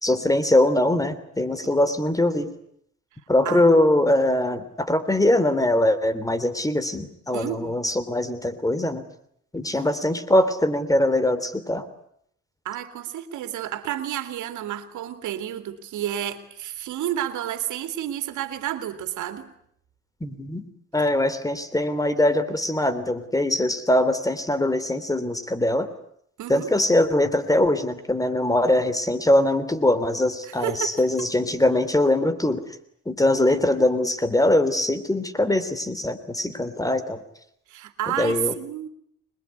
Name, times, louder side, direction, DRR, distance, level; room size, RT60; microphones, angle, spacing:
voice 1, 0.0-2.5 3.3-9.1 9.5-11.9 20.2-20.7 20.9-25.9 26.5-32.6 33.0-37.2 38.1-38.5, left 1 dB, 10° left, 13 dB, 3.3 m, -22 dB
voice 2, 7.3-7.8 12.6-19.5 26.4-26.7 30.5-31.0 37.7-38.9, right 11 dB, 85° right, 9 dB, 2.7 m, -30 dB
26.5 x 21.5 x 9.7 m, 0.71 s
cardioid pair, 95°, 30 cm